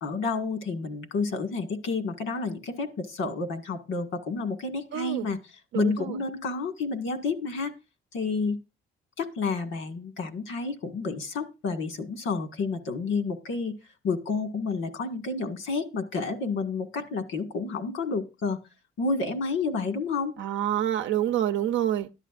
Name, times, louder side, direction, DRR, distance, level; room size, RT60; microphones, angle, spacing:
voice 1, 0.0-5.4 5.7-7.7 8.1-8.6 9.2-13.7 14.0-18.6 19.0-20.4, left 4 dB, 80° left, 1.8 m, -30 dB
voice 2, 4.9-5.3 5.7-6.2 20.4-22.2, right 11 dB, 75° right, 0.6 m, -27 dB
13.5 x 11.0 x 2.5 m
cardioid pair, 90°, 20 cm